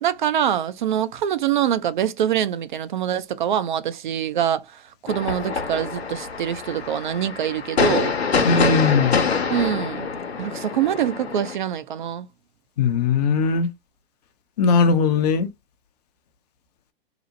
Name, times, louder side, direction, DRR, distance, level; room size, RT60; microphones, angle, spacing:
voice 1, 0.0-8.1 9.5-10.1 10.4-12.3, right 10 dB, 50° right, 0.4 m, -24 dB
sound 1, 5.1-11.6, left 5 dB, 80° left, 0.8 m, -25 dB
voice 2, 8.4-9.2 12.8-13.7 14.6-15.5, left 4 dB, 40° left, 0.5 m, -19 dB
2.8 x 2.0 x 2.6 m
figure-of-eight pair, 110°, 31 cm